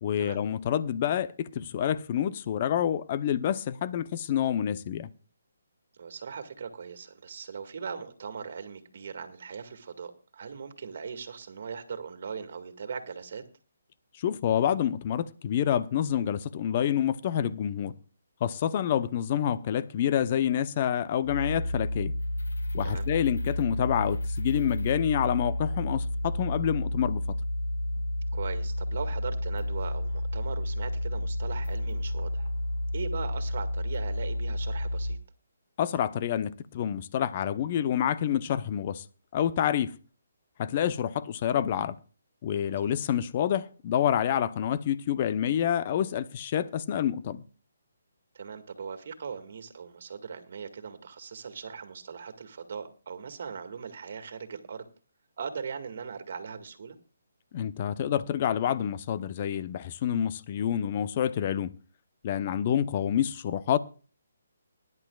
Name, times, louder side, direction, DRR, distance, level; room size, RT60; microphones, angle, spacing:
voice 1, 0.0-5.1 14.2-17.9 18.4-22.1 22.7-27.2 35.8-39.0 39.3-39.9 40.6-42.0 42.4-47.4 57.5-61.7 62.2-63.8, left 9 dB, 35° left, 0.7 m, -28 dB
voice 2, 5.9-13.4 22.8-23.1 28.3-32.5 32.9-35.2 42.6-42.9 48.3-54.9 55.4-57.0, right 6 dB, 55° right, 2.0 m, -39 dB
sound 1, 21.2-35.2, left 1 dB, 90° left, 2.7 m, -31 dB
20.5 x 10.5 x 2.4 m
hypercardioid pair, 155°, 0 cm